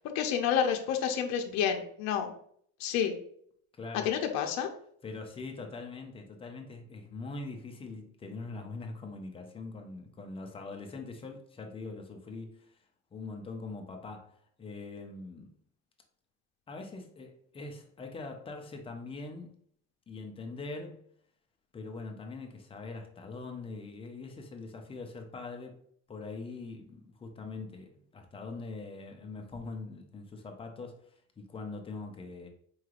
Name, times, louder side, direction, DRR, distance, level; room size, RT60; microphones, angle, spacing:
voice 1, 0.1-2.3 2.8-3.1 4.0-4.7, left 8 dB, 60° left, 0.6 m, -29 dB
voice 2, 3.8-4.1 5.0-12.8 13.1-15.5 16.7-19.5 20.1-21.1 21.7-25.8 26.1-32.5, left 3 dB, 20° left, 0.5 m, -42 dB
4.7 x 3.1 x 2.4 m
cardioid pair, 155°, 31 cm